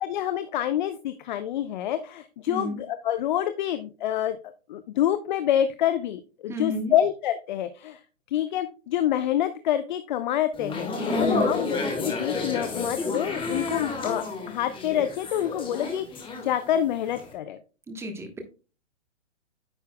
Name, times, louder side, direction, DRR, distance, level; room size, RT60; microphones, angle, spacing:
voice 1, 0.0-4.4 4.7-8.0 8.3-17.6, left 11 dB, 40° left, 11 dB, 0.6 m, -27 dB
voice 2, 2.5-2.8 6.5-6.9 11.1-11.6 17.9-18.4, left 1 dB, 5° right, 6 dB, 1.1 m, -30 dB
sound 1, 10.5-16.8 17.1-17.3, left 3 dB, 15° left, 1.8 m, -30 dB
9.7 x 6.7 x 2.2 m, 0.33 s
hypercardioid pair, 140°, 37 cm